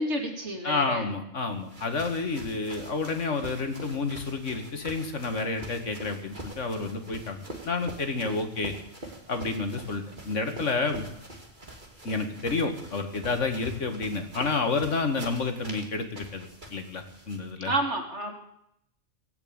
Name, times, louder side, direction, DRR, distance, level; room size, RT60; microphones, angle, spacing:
voice 1, 0.0-1.0 17.7-18.3, right 1 dB, 60° right, 3 dB, 2.9 m, -29 dB
voice 2, 0.6-7.4 7.6-8.7 9.3-11.1 12.0-17.7, left 3 dB, 70° left, 6 dB, 2.2 m, -30 dB
sound 1, 1.5-17.5, right 1 dB, 40° right, 2.8 m, -44 dB
18.0 x 8.6 x 8.9 m, 0.75 s
omnidirectional pair, 1.3 m